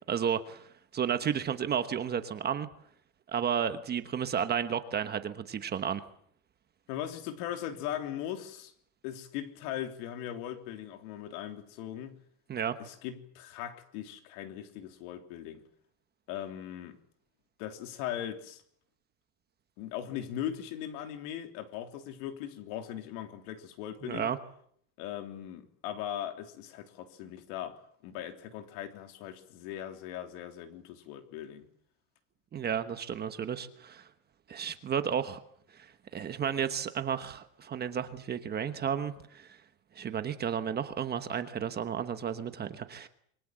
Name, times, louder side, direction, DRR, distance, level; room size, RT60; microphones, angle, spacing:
voice 1, 0.1-0.7 0.9-2.7 3.3-6.0 12.5-12.8 24.0-24.4 32.5-34.1 34.5-35.4 35.7-39.6 39.9-43.1, right 8 dB, 20° right, 1.2 m, -32 dB
voice 2, 6.9-8.7 9.0-12.2 12.8-15.6 16.3-17.0 17.6-18.6 19.8-24.3 25.0-31.7, left 11 dB, 65° left, 3.4 m, -39 dB
27.0 x 23.5 x 7.6 m
cardioid pair, 175°, 47 cm